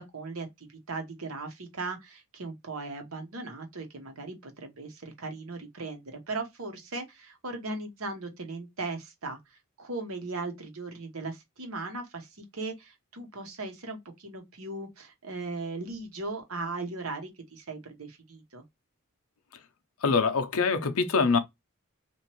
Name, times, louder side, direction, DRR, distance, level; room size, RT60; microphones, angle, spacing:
voice 1, 0.0-9.4 9.8-18.6, right 3 dB, 70° right, 1.0 m, -38 dB
voice 2, 20.0-21.4, left 4 dB, 70° left, 0.6 m, -24 dB
3.0 x 2.5 x 3.0 m
head